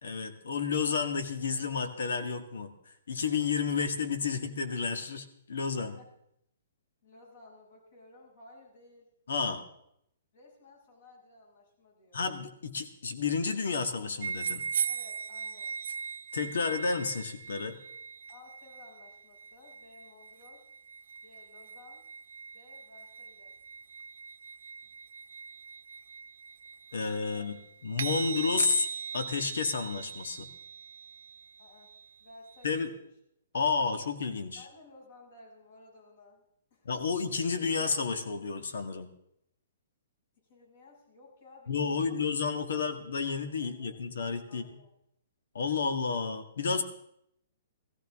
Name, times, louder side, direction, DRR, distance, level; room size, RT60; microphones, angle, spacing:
voice 1, 0.0-2.7 3.1-5.9 9.3-9.6 12.1-14.6 16.3-17.8 26.9-27.6 27.8-28.9 29.1-30.5 32.6-32.9 33.5-34.6 36.8-39.1 41.7-44.6 45.5-46.8, left 5 dB, 85° left, 9 dB, 1.6 m, -31 dB
voice 2, 5.8-6.1 7.0-9.1 10.3-12.2 14.9-15.8 18.3-20.7 21.2-22.0 22.5-23.5 27.3-27.5 31.6-33.1 34.5-36.4 36.7-37.0 40.4-42.2 42.7-42.9 43.6-43.9 44.5-44.9, left 2 dB, 60° left, -1 dB, 6.8 m, -56 dB
sound 1, 14.2-32.7, right 6 dB, 70° right, 0.9 m, -40 dB
17.5 x 15.0 x 3.6 m, 0.74 s
hypercardioid pair, 155°, 0 cm